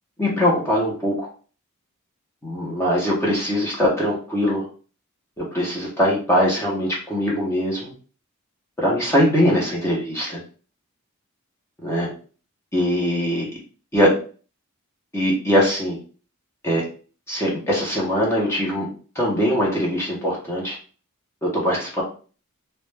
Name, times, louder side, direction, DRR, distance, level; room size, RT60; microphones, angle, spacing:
voice 1, 0.2-1.3 2.4-4.7 5.4-7.9 8.8-10.4 11.8-12.1 12.7-13.5 13.9-14.1 15.1-16.0 16.6-16.8 17.3-18.9 19.2-20.8 21.4-22.0, equal, 10° left, -4 dB, 0.6 m, -21 dB
2.1 x 2.1 x 3.1 m, 0.39 s
head